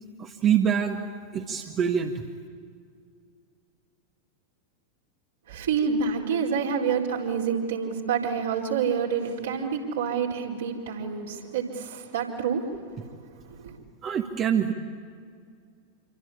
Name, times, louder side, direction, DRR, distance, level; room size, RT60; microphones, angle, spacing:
voice 1, 0.2-1.0 1.3-2.3 14.0-14.7, right 8 dB, 30° right, 3 dB, 1.7 m, -25 dB
voice 2, 5.5-12.6 13.5-13.7, right 6 dB, 60° right, -1 dB, 4.6 m, -28 dB
27.5 x 25.0 x 8.7 m, 2.2 s
figure-of-eight pair, 90°, 0 cm